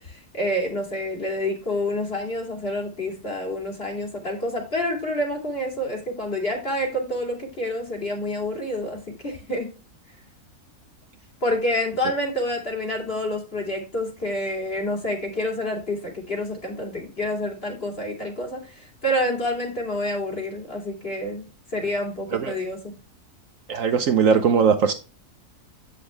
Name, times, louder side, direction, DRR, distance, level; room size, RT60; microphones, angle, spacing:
voice 1, 0.0-9.7 11.4-22.8, left 1 dB, 40° left, 2.7 m, -28 dB
voice 2, 23.7-24.9, right 6 dB, 65° right, 1.0 m, -19 dB
8.3 x 6.2 x 3.4 m
omnidirectional pair, 1.7 m